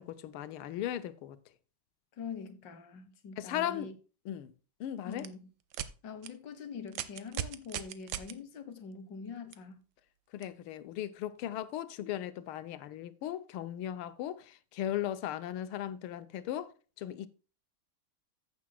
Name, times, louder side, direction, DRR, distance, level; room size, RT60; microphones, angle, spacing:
voice 1, 0.0-1.4 3.4-3.9 4.2-4.5 4.8-5.3 10.3-17.3, left 11 dB, 90° left, 1.6 m, -37 dB
voice 2, 2.1-3.9 5.1-5.5 6.0-9.8, left 6 dB, 60° left, 1.8 m, -44 dB
sound 1, 5.1-5.3 5.7-5.9 6.2-6.3 6.9-8.3 9.5-9.6 10.4-10.5, right 11 dB, 70° right, 1.4 m, -37 dB
14.5 x 7.3 x 2.2 m
omnidirectional pair, 2.3 m